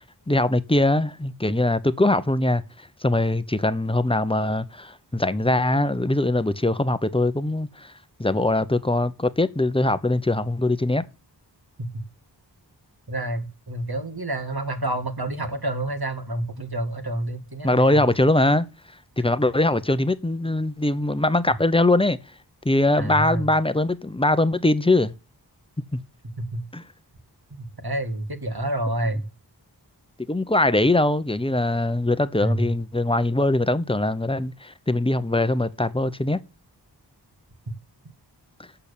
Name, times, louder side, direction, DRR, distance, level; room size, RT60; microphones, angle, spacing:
voice 1, 0.3-2.6 3.0-7.9 8.2-11.1 17.6-18.7 19.2-22.2 22.6-25.1 25.9-26.0 26.7-26.8 30.3-36.4, left 2 dB, 15° left, 0.9 m, -22 dB
voice 2, 13.1-18.1 23.0-23.5 26.4-26.6 27.5-29.3 32.4-32.7, right 1 dB, 60° right, 2.0 m, -28 dB
8.2 x 7.0 x 6.8 m
wide cardioid pair, 45°, 42 cm